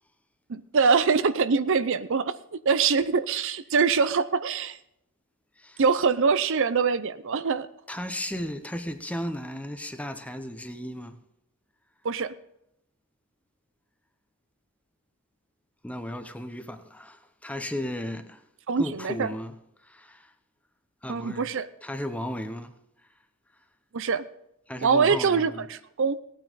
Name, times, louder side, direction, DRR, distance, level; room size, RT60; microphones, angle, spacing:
voice 1, 0.5-4.8 5.8-7.7 12.0-12.3 18.7-19.3 21.1-21.7 23.9-24.2 24.8-26.2, right 5 dB, 60° right, 0.6 m, -24 dB
voice 2, 7.9-11.2 15.8-18.4 18.8-19.6 19.8-20.3 21.0-21.5 21.8-22.7 24.7-25.7, left 1 dB, 5° left, 0.8 m, -35 dB
17.5 x 9.1 x 4.0 m
head